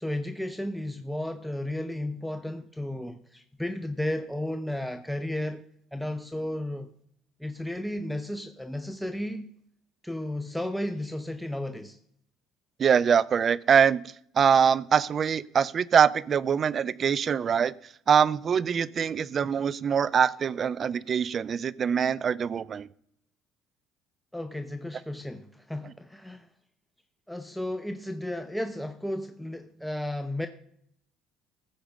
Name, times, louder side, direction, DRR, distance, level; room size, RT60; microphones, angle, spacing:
voice 1, 0.0-5.6 5.9-6.9 7.4-9.5 10.0-12.0 24.3-26.5 27.3-30.5, left 1 dB, ahead, 0.8 m, -33 dB
voice 2, 12.8-14.0 14.4-17.7 18.1-22.9, right 7 dB, 40° right, 0.5 m, -23 dB
15.0 x 5.2 x 7.2 m
supercardioid pair, 85°, 0 cm